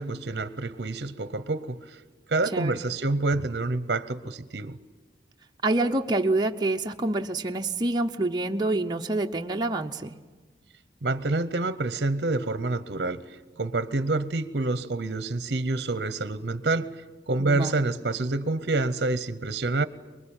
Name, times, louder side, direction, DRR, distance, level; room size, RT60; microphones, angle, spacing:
voice 1, 0.0-2.0 2.3-4.8 11.0-19.9, right 2 dB, 60° right, 0.8 m, -28 dB
voice 2, 5.6-10.1 17.4-17.8, right 2 dB, 25° right, 0.7 m, -27 dB
25.0 x 22.0 x 8.9 m
head